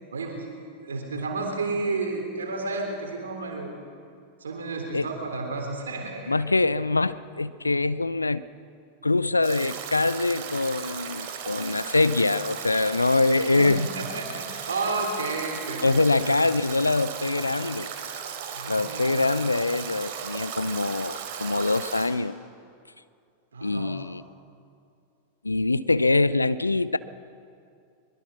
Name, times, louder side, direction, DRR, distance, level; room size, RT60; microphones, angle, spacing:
voice 1, 0.1-3.7 4.4-6.4 13.1-13.2 13.6-16.3 18.5-19.2 23.5-24.0, right 3 dB, 70° right, 3 dB, 3.3 m, -32 dB
voice 2, 6.3-8.5 9.0-13.9 15.8-17.9 18.7-22.4 23.6-24.2 25.4-27.0, left 3 dB, 80° left, 17 dB, 0.6 m, -24 dB
Stream / Drip / Trickle dribble, 9.4-22.1, right 7 dB, 50° right, 3.5 m, -36 dB
24.0 x 22.5 x 5.9 m, 2.4 s
figure-of-eight pair, 90°, 0 cm